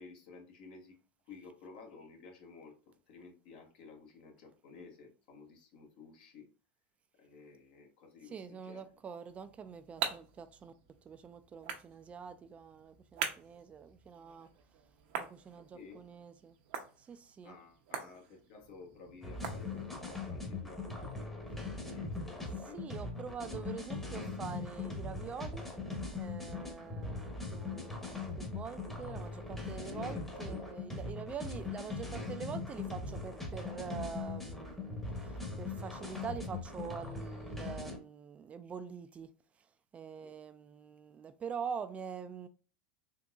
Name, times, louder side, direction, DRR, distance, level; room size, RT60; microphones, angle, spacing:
voice 1, 0.0-6.5 7.2-8.8 15.6-16.1 17.4-22.8 26.5-26.7 29.7-30.8 40.2-40.3, left 4 dB, 70° left, 1.2 m, -54 dB
voice 2, 8.3-10.7 11.0-14.5 15.1-16.6 17.0-17.5 22.7-25.7 26.2-39.3 39.9-42.5, right 6 dB, 25° right, 0.3 m, -45 dB
sound 1, 9.3-20.2, right 7 dB, 65° right, 0.7 m, -44 dB
sound 2, 19.2-38.0, left 3 dB, 5° left, 0.9 m, -40 dB
3.8 x 2.7 x 2.3 m
supercardioid pair, 115°, 5 cm